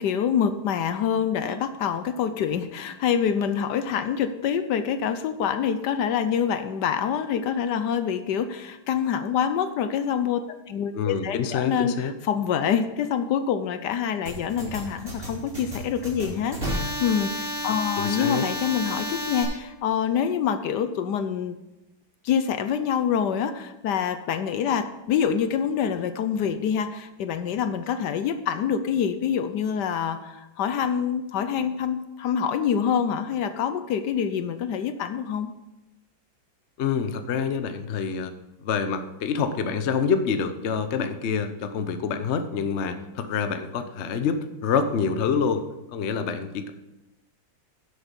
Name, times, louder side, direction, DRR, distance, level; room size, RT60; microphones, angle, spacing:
voice 1, 0.0-21.6 22.2-35.5, left 8 dB, 70° left, 10 dB, 1.2 m, -26 dB
voice 2, 10.9-12.1 18.0-18.4 36.8-38.3 38.6-45.6 45.9-46.7, left 6 dB, 55° left, 9 dB, 0.8 m, -26 dB
sound 1, 14.3-19.4, equal, 40° right, 3.8 m, -31 dB
10.5 x 7.9 x 5.3 m, 0.97 s
omnidirectional pair, 2.0 m